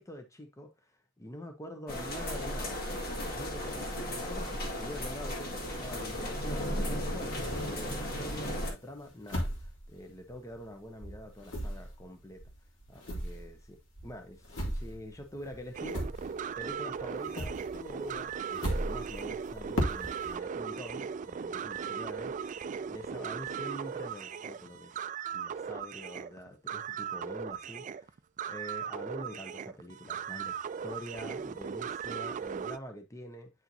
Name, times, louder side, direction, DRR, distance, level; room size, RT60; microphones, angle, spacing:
voice 1, 0.0-12.4 12.9-16.3 16.6-22.3 22.9-25.0 25.3-28.2 28.5-33.5, equal, 15° left, 0.8 m, -45 dB
sound 1, 1.9-8.7, equal, 50° left, 1.9 m, -35 dB
sound 2, 6.0-8.2 8.6-10.7 11.0-16.7 17.0-20.4, equal, 80° left, 2.1 m, -38 dB
sound 3, 15.7-32.8, right 7 dB, 40° right, 0.3 m, -38 dB
9.2 x 4.4 x 2.7 m
head